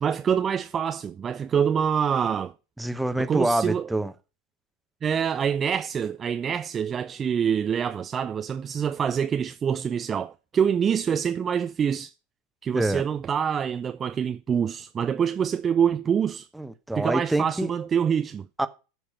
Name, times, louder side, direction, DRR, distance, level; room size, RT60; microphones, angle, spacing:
voice 1, 0.0-2.5 3.2-3.9 5.0-12.1 12.6-16.5 16.9-18.5, right 7 dB, 25° right, 0.4 m, -25 dB
voice 2, 2.8-4.1 12.7-13.0 16.6-17.7 18.6-18.7, right 1 dB, 5° right, 0.8 m, -26 dB
13.0 x 4.7 x 5.4 m
figure-of-eight pair, 85°, 0 cm